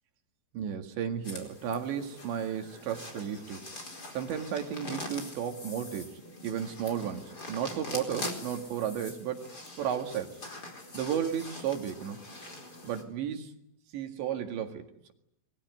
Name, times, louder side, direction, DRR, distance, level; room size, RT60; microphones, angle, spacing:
voice 1, 0.5-3.6 4.1-10.4 10.9-12.3 12.8-13.5 13.9-15.1, right 8 dB, 65° right, 5 dB, 4.0 m, -34 dB
sound 1, 1.2-13.0, left 2 dB, 20° left, 4.3 m, -43 dB
28.0 x 22.0 x 9.4 m, 0.76 s
omnidirectional pair, 5.9 m